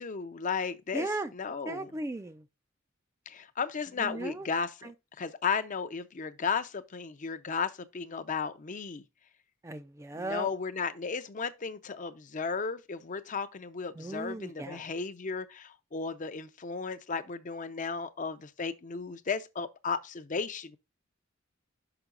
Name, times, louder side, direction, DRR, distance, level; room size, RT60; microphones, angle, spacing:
voice 1, 0.0-1.9 3.3-4.9 5.2-9.0 10.2-20.8, left 5 dB, 40° left, 0.5 m, -34 dB
voice 2, 0.9-1.3 1.7-2.4 4.0-4.5 4.8-4.9 9.6-10.5 14.0-14.8, right 2 dB, 15° right, 0.4 m, -36 dB
5.9 x 5.5 x 3.8 m
head